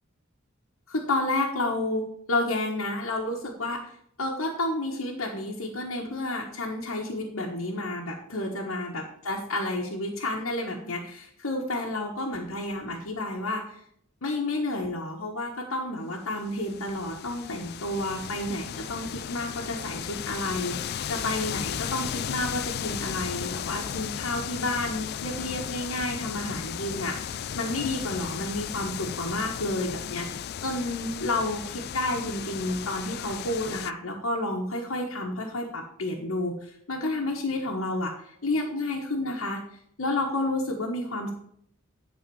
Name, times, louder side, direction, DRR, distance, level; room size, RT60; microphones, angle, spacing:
voice 1, 0.9-2.0 2.3-3.8 4.2-13.6 14.2-38.1 38.4-39.6 40.0-41.3, left 2 dB, 90° left, -3 dB, 1.4 m, -30 dB
sound 1, 16.3-33.9, left 9 dB, 50° left, 0.3 m, -35 dB
11.0 x 4.1 x 6.9 m, 0.69 s
head